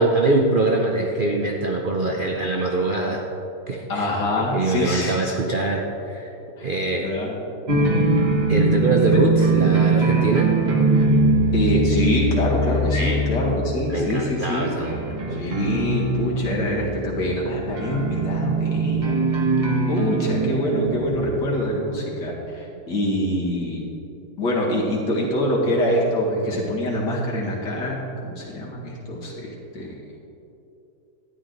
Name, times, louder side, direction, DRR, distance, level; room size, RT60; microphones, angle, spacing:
voice 1, 0.0-3.3 3.7-4.1 4.4-6.3 6.6-7.1 8.5-10.6 12.9-13.2 13.9-15.5 19.6-19.7, right 2 dB, 60° right, 0 dB, 0.5 m, -24 dB
voice 2, 3.9-5.4 6.6-6.7 7.0-7.4 9.1-9.2 11.5-14.7 15.3-19.2 19.9-23.9 24.4-29.9, equal, 75° left, -4 dB, 2.4 m, -25 dB
sound 1, 7.7-21.2, right 2 dB, 30° right, 1.0 m, -22 dB
12.5 x 9.7 x 3.9 m, 2.9 s
omnidirectional pair, 1.9 m